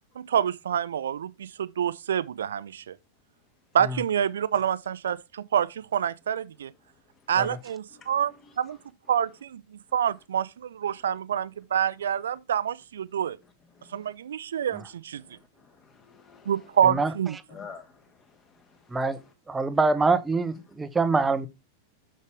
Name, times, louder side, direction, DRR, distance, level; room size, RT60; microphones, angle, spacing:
voice 1, 0.2-3.0 3.7-6.7 7.3-8.8 9.1-13.4 13.9-15.2 16.5-17.4, right 9 dB, 65° right, 0.4 m, -27 dB
voice 2, 7.9-8.5 13.7-14.1 15.2-16.7 17.5-19.0, left 5 dB, 25° left, 1.6 m, -50 dB
voice 3, 19.5-21.5, right 3 dB, 10° right, 0.7 m, -25 dB
6.7 x 6.5 x 3.3 m
figure-of-eight pair, 90°, 0 cm